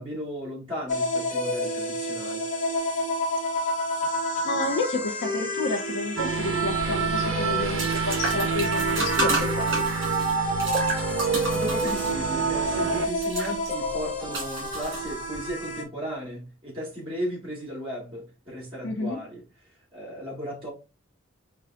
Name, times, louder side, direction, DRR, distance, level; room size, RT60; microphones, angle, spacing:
voice 1, 0.0-2.5 11.5-20.7, equal, 25° right, 2.1 m, -35 dB
sound 1, 0.9-15.8, equal, 35° left, 1.0 m, -30 dB
voice 2, 4.4-9.8 18.8-19.2, left 2 dB, 65° left, 0.7 m, -30 dB
sound 2, 6.2-13.1, right 5 dB, 75° right, 0.5 m, -27 dB
sound 3, 6.6-15.5, right 2 dB, 60° right, 1.8 m, -32 dB
5.5 x 2.3 x 2.5 m
head